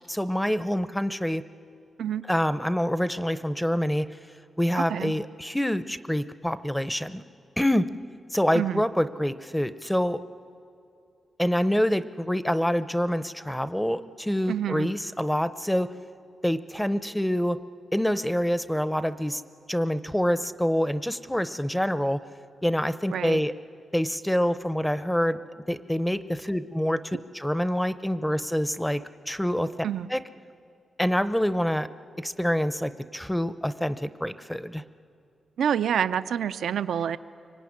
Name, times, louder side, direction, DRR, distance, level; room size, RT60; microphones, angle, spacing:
voice 1, 0.1-1.4 2.3-4.1 4.6-7.2 7.6-7.9 8.3-10.2 11.4-15.9 16.4-17.6 17.9-19.4 19.7-22.2 22.6-23.5 23.9-25.4 25.7-29.7 30.1-30.2 31.0-31.9 32.2-34.8, equal, 5° left, 13 dB, 0.6 m, -26 dB
voice 2, 4.8-5.1 8.5-8.8 14.5-14.9 23.1-23.4 29.8-30.1 35.6-37.2, right 9 dB, 90° right, 13 dB, 0.6 m, -27 dB
25.0 x 23.5 x 9.7 m, 2.5 s
wide cardioid pair, 160°, 0 cm